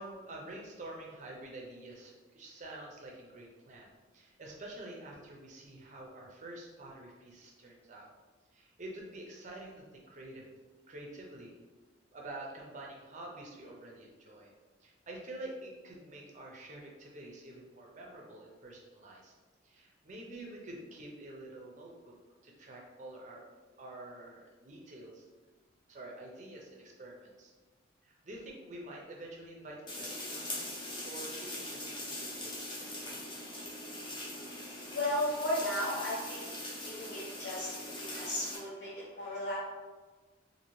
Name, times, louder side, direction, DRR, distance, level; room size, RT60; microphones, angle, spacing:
voice 1, 0.0-8.1 8.5-10.5 10.9-11.5 12.1-14.5 14.8-19.3 19.6-22.1 22.4-23.4 23.8-25.2 25.9-27.5 28.0-33.2, right 1 dB, 40° right, -1 dB, 0.5 m, -48 dB
sound 1, 29.9-38.6, left 1 dB, 25° left, 0.7 m, -41 dB
voice 2, 34.9-36.5 36.8-39.6, left 1 dB, 70° left, -9 dB, 0.7 m, -35 dB
2.8 x 2.7 x 3.0 m, 1.3 s
head